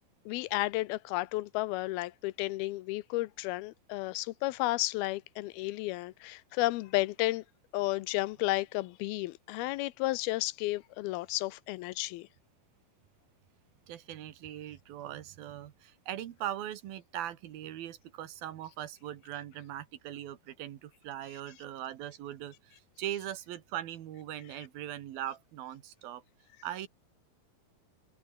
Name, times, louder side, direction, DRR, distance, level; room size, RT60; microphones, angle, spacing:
voice 1, 0.3-7.4 7.7-12.3, left 19 dB, 85° left, 2.6 m, -32 dB
voice 2, 13.9-26.2 26.6-26.9, right 12 dB, 75° right, 3.3 m, -40 dB
omnidirectional pair, 4.4 m